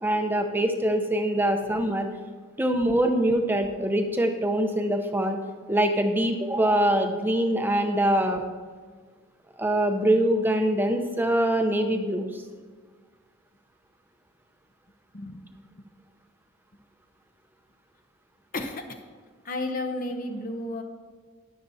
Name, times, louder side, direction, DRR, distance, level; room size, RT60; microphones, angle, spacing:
voice 1, 0.0-2.1 2.6-5.4 5.7-8.4 9.6-12.4, right 1 dB, 10° right, 5 dB, 0.7 m, -24 dB
voice 2, 19.4-20.8, left 2 dB, 40° left, 5 dB, 0.7 m, -32 dB
20.0 x 6.8 x 2.7 m, 1.5 s
head